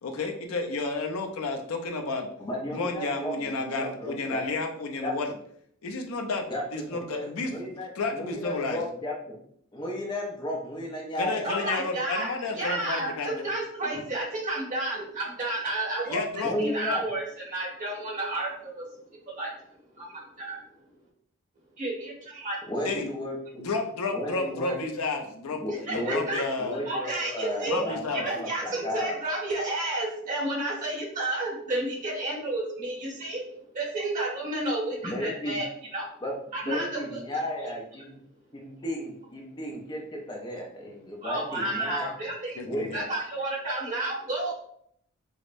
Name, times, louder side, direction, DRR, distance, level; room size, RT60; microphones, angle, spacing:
voice 1, 0.0-2.3 2.7-5.3 5.8-7.5 7.9-8.8 11.2-13.4 16.1-16.5 22.8-23.1 23.6-26.8 27.7-28.3 42.6-43.0, left 3 dB, 80° left, 4 dB, 0.5 m, -31 dB
voice 2, 2.4-4.4 5.0-5.1 6.5-9.4 9.7-11.7 16.4-17.0 22.7-23.6 24.1-24.8 25.5-29.1 35.0-35.6 36.2-36.3 36.6-38.2 38.5-42.1 42.6-42.9, left 1 dB, 20° left, -1 dB, 0.5 m, -34 dB
voice 3, 11.4-12.3 12.6-16.2 16.6-18.9 19.3-19.5 19.9-20.6 21.8-22.6 25.9-26.4 26.9-27.8 28.1-33.5 33.7-36.1 36.5-37.0 37.6-37.7 41.2-42.6 42.9-44.5, right 2 dB, 40° right, -5 dB, 1.3 m, -31 dB
4.9 x 2.1 x 2.5 m, 0.67 s
head